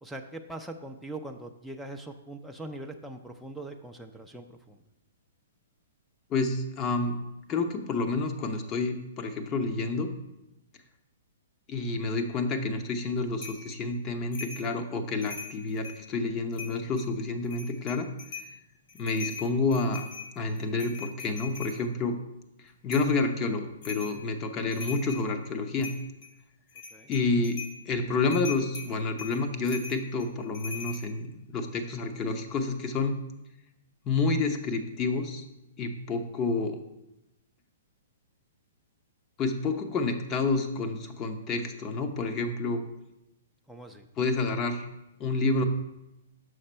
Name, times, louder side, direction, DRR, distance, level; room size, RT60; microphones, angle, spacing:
voice 1, 0.0-4.8 26.9-27.1 43.7-44.0, right 2 dB, ahead, 1 dB, 0.4 m, -41 dB
voice 2, 6.3-7.2 7.5-10.1 11.7-18.1 18.9-20.1 20.4-22.2 22.8-25.9 27.1-27.6 27.8-33.2 34.1-35.4 35.8-36.8 39.4-42.8 44.2-44.9 45.2-45.6, left 3 dB, 25° left, 6 dB, 0.7 m, -29 dB
sound 1, 13.4-13.7 14.3-14.7 15.1-16.0 16.5-17.1 17.5-18.5 18.9-21.8 22.9-23.2 23.8-24.2 24.6-25.3 25.8-26.3 26.7-27.8 28.3-31.0, left 5 dB, 55° left, 2.4 m, -41 dB
6.4 x 5.8 x 4.3 m, 0.92 s
hypercardioid pair, 135°, 0 cm